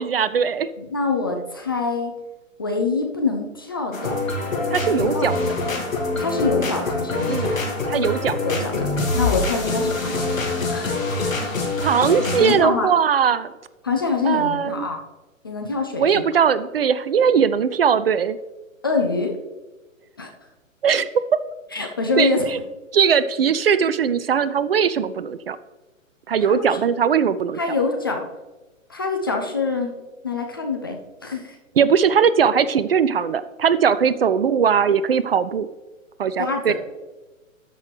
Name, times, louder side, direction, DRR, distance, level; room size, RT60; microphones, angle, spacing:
voice 1, 0.0-0.7 4.7-5.4 7.3-7.6 7.9-8.4 11.8-13.5 14.2-14.9 16.0-18.4 20.8-21.1 22.2-22.6 22.9-25.6 26.3-27.6 31.8-35.7 36.2-36.7, right 7 dB, 50° right, 15 dB, 0.4 m, -20 dB
voice 2, 0.8-2.1 2.6-4.2 4.9-5.3 6.2-7.5 8.4-8.9 9.1-10.4 10.7-11.0 12.4-12.9 13.8-15.0 15.4-16.2 18.8-19.4 20.2-20.3 21.7-22.5 26.5-26.8 27.6-28.3 28.9-29.9 30.2-31.6 36.4-36.7, left 4 dB, 20° left, 2 dB, 0.4 m, -25 dB
sound 1, 3.9-12.5, left 2 dB, 75° left, 2.2 m, -25 dB
13.5 x 6.1 x 3.3 m, 1.2 s
figure-of-eight pair, 125°, 40 cm